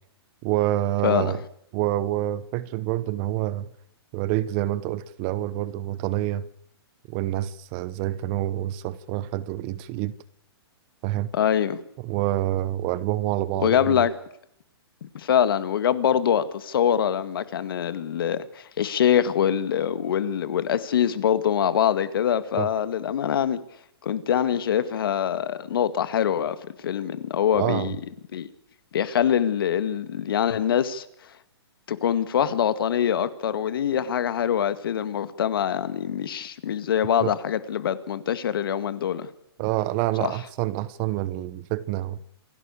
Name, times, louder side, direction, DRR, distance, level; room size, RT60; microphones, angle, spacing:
voice 1, 0.4-1.4 1.7-3.7 4.1-6.5 7.1-10.1 11.0-11.3 12.0-14.0 22.6-22.7 27.5-27.9 37.2-37.3 39.6-42.2, right 15 dB, 25° right, 0.9 m, -27 dB
voice 2, 1.0-1.4 11.3-11.8 13.6-14.1 15.1-23.6 24.0-26.6 26.8-28.0 28.3-28.5 28.9-31.0 31.9-39.3 40.2-40.3, left 9 dB, 60° left, 2.0 m, -24 dB
27.5 x 12.0 x 8.5 m
hypercardioid pair, 165°, 14 cm